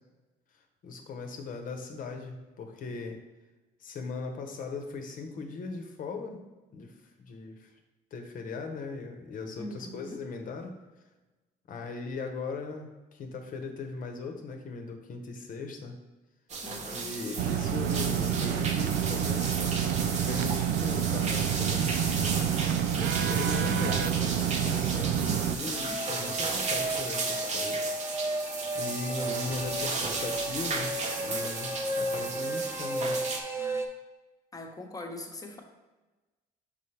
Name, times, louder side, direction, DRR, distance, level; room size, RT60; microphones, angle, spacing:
voice 1, 0.8-3.2 3.8-6.4 6.7-6.9 7.2-7.7 8.1-10.7 11.7-16.0 16.8-22.3 22.9-27.9 28.7-33.3, left 4 dB, 55° left, 5 dB, 1.0 m, -38 dB
voice 2, 9.6-10.2 16.6-17.4 25.2-26.0 34.5-35.6, left 1 dB, 20° left, 2 dB, 1.1 m, -42 dB
sound 1, 16.5-33.4, right 4 dB, 45° right, 0.9 m, -34 dB
sound 2, 17.4-25.6, right 9 dB, 75° right, 0.4 m, -28 dB
sound 3, 25.7-33.9, right 1 dB, 15° right, 0.7 m, -34 dB
5.6 x 5.1 x 3.3 m, 1.2 s
cardioid pair, 110°, 17 cm